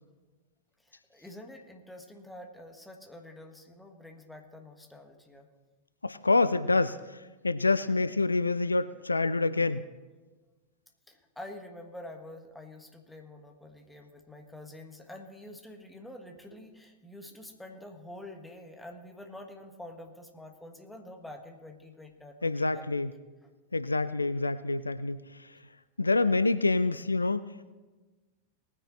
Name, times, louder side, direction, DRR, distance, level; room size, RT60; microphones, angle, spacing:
voice 1, 0.8-5.5 11.1-23.0 23.4-23.5, left 1 dB, 5° left, 3 dB, 1.5 m, -47 dB
voice 2, 6.0-9.8 22.4-23.1 23.7-25.6 26.0-27.5, left 3 dB, 80° left, 14 dB, 0.4 m, -27 dB
19.5 x 9.7 x 3.2 m, 1.2 s
figure-of-eight pair, 90°, 0 cm